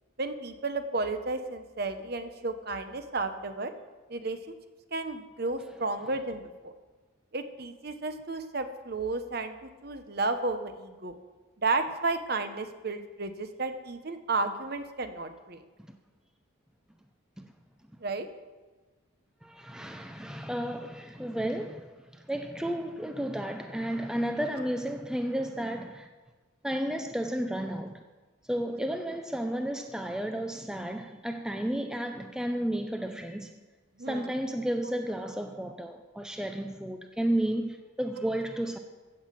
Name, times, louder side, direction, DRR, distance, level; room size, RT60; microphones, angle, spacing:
voice 1, 0.2-3.7 4.1-4.5 4.9-6.7 7.3-11.1 11.6-15.6 18.0-18.3 34.0-34.3, right 3 dB, 50° right, 0.9 m, -32 dB
voice 2, 19.4-26.1 26.6-28.0 28.5-33.5 34.1-38.8, right 1 dB, 5° right, 0.5 m, -32 dB
15.5 x 5.9 x 7.5 m
head